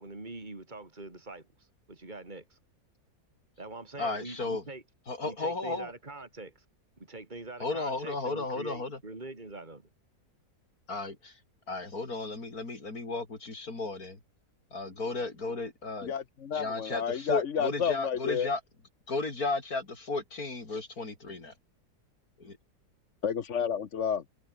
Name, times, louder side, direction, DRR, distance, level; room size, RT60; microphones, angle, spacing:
voice 1, 0.0-2.6 3.6-4.8 5.2-6.6 7.0-9.9, right 2 dB, 30° right, 4.1 m, -44 dB
voice 2, 4.0-4.6 5.1-5.9 7.6-9.0 10.9-11.4 11.7-14.2 14.7-16.1 16.5-18.6 19.1-21.5, left 3 dB, 65° left, 4.7 m, -34 dB
voice 3, 16.0-18.5 23.2-24.2, left 7 dB, 50° left, 1.4 m, -30 dB
omnidirectional pair, 1.7 m